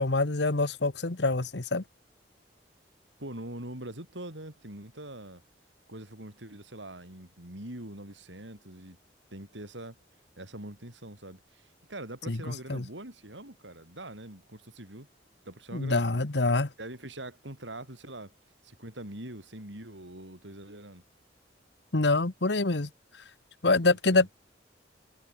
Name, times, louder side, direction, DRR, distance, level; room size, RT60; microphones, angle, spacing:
voice 1, 0.0-1.8 12.3-12.8 15.7-16.7 21.9-22.9 23.6-24.3, left 3 dB, 70° left, 1.3 m, -26 dB
voice 2, 3.2-5.4 5.9-9.0 9.3-10.0 10.4-15.1 15.4-16.2 16.8-18.3 18.6-21.0 23.8-24.3, right 1 dB, 90° right, 7.9 m, -43 dB
head